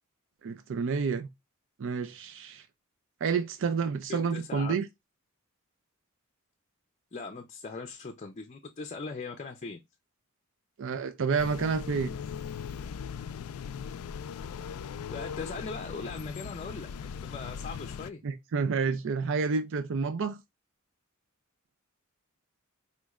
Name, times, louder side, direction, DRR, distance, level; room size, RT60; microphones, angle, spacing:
voice 1, 0.4-1.3 1.8-2.6 3.2-4.9 10.8-12.1 18.2-20.4, right 5 dB, 65° right, 0.4 m, -29 dB
voice 2, 3.8-4.7 7.1-9.8 15.1-18.2, left 4 dB, 35° left, 0.5 m, -40 dB
sound 1, 11.4-18.1, left 7 dB, 90° left, 0.3 m, -39 dB
4.3 x 3.1 x 2.3 m
head